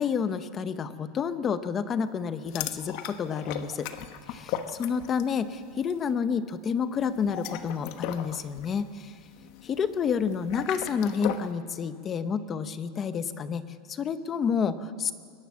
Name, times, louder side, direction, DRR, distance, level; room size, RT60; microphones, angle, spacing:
voice 1, 0.0-3.9 4.3-9.1 9.6-13.6 13.9-15.1, left 6 dB, 20° left, 12 dB, 0.8 m, -29 dB
sound 1, 2.5-5.4 5.7-6.0 7.1-11.5, left 10 dB, 45° left, 1.1 m, -37 dB
22.0 x 19.5 x 7.5 m, 2.1 s
supercardioid pair, 180°, 0 cm